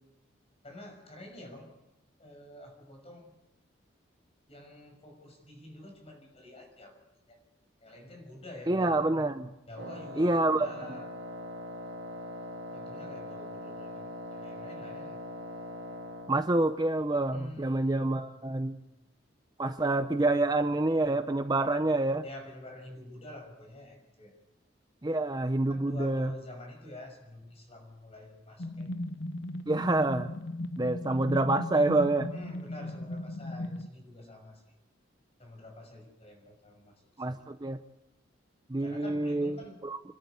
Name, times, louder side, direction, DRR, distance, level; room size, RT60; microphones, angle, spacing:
voice 1, 0.6-1.8 2.2-3.4 4.5-7.4 7.8-8.9 9.7-11.1 12.7-15.2 17.3-18.0 18.4-18.8 22.2-24.3 25.7-28.9 32.3-34.6 35.4-37.4 38.8-39.8, left 1 dB, 30° left, 4 dB, 6.2 m, -48 dB
voice 2, 8.7-9.5 10.2-11.0 16.3-18.8 19.6-22.2 25.0-26.3 29.7-30.3 30.8-32.3 37.2-37.8 38.7-40.0, right 2 dB, 20° right, 9 dB, 0.7 m, -27 dB
Wind instrument woodwind instrument, 9.8-16.4, left 1 dB, 70° right, 2.4 m, -41 dB
sound 1, 28.6-33.9, left 1 dB, 65° left, 1.0 m, -37 dB
28.5 x 12.5 x 8.2 m, 0.91 s
head